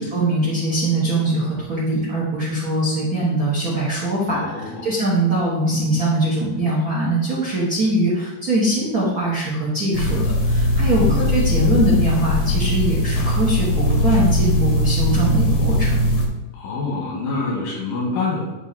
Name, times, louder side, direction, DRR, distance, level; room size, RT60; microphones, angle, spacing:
voice 1, 0.0-4.5 4.8-16.0, right 1 dB, 80° right, -6 dB, 0.8 m, -21 dB
voice 2, 4.3-4.9 11.0-11.2 16.5-18.4, left 3 dB, 85° left, -4 dB, 3.2 m, -26 dB
sound 1, 9.9-16.3, left 1 dB, 70° left, 1.2 m, -20 dB
9.6 x 3.2 x 4.0 m, 1.1 s
omnidirectional pair, 3.7 m